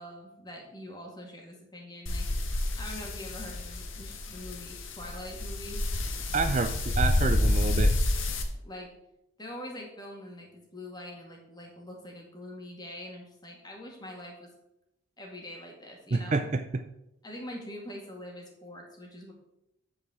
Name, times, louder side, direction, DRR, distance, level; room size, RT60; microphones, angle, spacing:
voice 1, 0.0-2.3 2.8-5.8 8.6-8.9 9.4-14.5 15.2-16.4 17.2-19.3, left 1 dB, 20° left, 0 dB, 2.1 m, -44 dB
sound 1, 2.1-8.4, left 1 dB, 80° left, 1.3 m, -29 dB
voice 2, 6.3-7.9 16.1-16.6, right 4 dB, 35° right, 8 dB, 0.4 m, -28 dB
8.6 x 4.7 x 7.5 m, 0.85 s
head